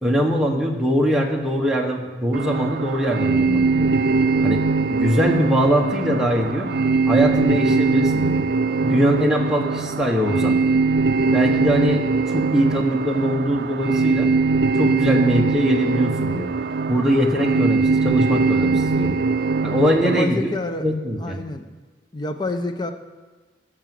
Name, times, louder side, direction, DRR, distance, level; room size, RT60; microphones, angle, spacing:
voice 1, 0.0-3.9 4.4-4.6 4.9-6.7 7.1-8.4 8.8-10.6 11.3-14.3 14.8-16.5 16.9-19.1 19.6-20.5 20.8-21.4, equal, 5° right, -1 dB, 1.2 m, -22 dB
sound 1, 2.3-20.2, right 4 dB, 60° right, 0.5 m, -21 dB
voice 2, 20.0-20.8 21.2-21.7 22.1-22.9, left 2 dB, 25° left, 7 dB, 0.8 m, -27 dB
13.5 x 6.2 x 7.7 m, 1.3 s
head